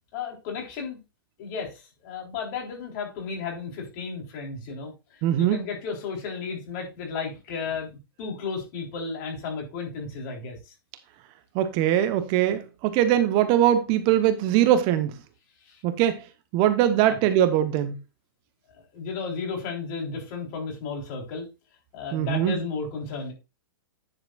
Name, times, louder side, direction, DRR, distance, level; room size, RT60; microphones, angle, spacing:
voice 1, 0.1-1.0 1.4-7.9 8.2-10.7 15.6-15.8 17.1-17.2 18.8-21.5 21.9-23.3, left 5 dB, 45° left, 3.8 m, -34 dB
voice 2, 5.2-5.6 11.5-15.2 15.8-16.2 16.5-17.9 22.1-22.6, right 11 dB, 40° right, 1.0 m, -21 dB
9.9 x 7.2 x 2.4 m
hypercardioid pair, 120°, 12 cm